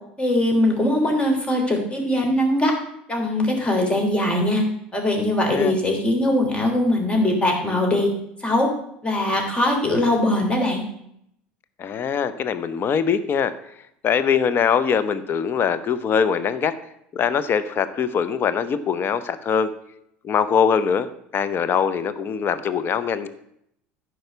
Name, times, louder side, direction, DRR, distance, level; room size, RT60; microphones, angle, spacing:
voice 1, 0.2-2.7 3.1-4.6 4.9-8.1 8.4-8.7 9.0-10.8, left 1 dB, 20° left, 2 dB, 3.4 m, -21 dB
voice 2, 11.8-13.5 14.0-16.7 17.1-19.7 20.2-21.1 21.3-23.3, left 7 dB, 40° left, 12 dB, 0.9 m, -22 dB
11.0 x 4.7 x 8.1 m, 0.74 s
hypercardioid pair, 80°, 6 cm